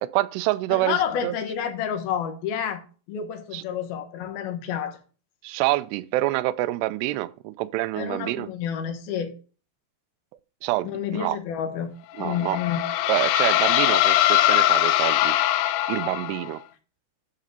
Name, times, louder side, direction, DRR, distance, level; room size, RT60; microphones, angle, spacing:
voice 1, 0.0-1.4 3.5-3.6 5.4-8.5 10.6-11.4 12.2-12.6 13.1-15.3 15.9-16.6, right 17 dB, 85° right, 2.5 m, -26 dB
voice 2, 0.7-2.8 3.1-5.0 8.0-9.3 10.8-11.9 12.2-12.8, left 8 dB, 70° left, 2.7 m, -29 dB
sound 1, 12.2-16.5, left 15 dB, 85° left, 2.9 m, -21 dB
10.5 x 4.1 x 5.2 m
omnidirectional pair, 5.1 m